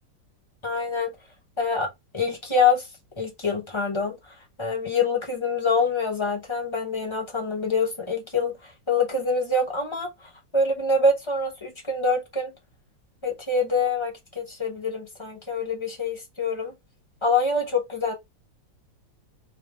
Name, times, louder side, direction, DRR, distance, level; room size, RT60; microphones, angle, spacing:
voice 1, 0.6-1.1 1.6-2.8 3.2-4.2 4.6-8.5 8.9-10.1 10.5-12.5 13.2-16.7 17.2-18.1, left 3 dB, 30° left, 0.5 m, -25 dB
3.2 x 3.1 x 3.4 m
omnidirectional pair, 2.0 m